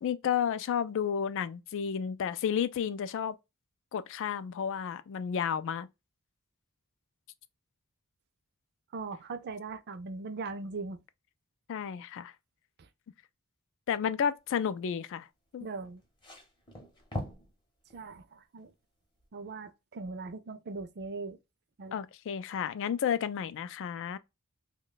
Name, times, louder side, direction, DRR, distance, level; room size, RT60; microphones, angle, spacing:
voice 1, 0.0-3.4 3.9-5.9 11.7-12.3 13.9-15.3 15.5-15.7 21.9-24.2, left 8 dB, 60° left, 0.3 m, -32 dB
voice 2, 8.9-11.0 12.8-12.9 15.6-16.0 17.9-18.7 19.3-21.4 21.8-22.0, right 4 dB, 50° right, 0.4 m, -40 dB
sound 1, 15.9-17.5 17.9-18.1 19.2-19.3, left 1 dB, 20° left, 0.7 m, -40 dB
2.9 x 2.2 x 3.8 m
head